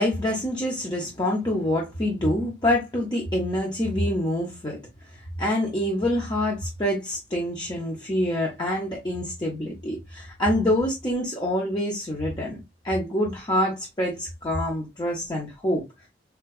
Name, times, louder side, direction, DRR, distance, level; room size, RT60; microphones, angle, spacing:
voice 1, 0.0-4.8 5.4-15.8, left 1 dB, 25° left, 0.7 m, -26 dB
4.5 x 2.2 x 2.2 m
head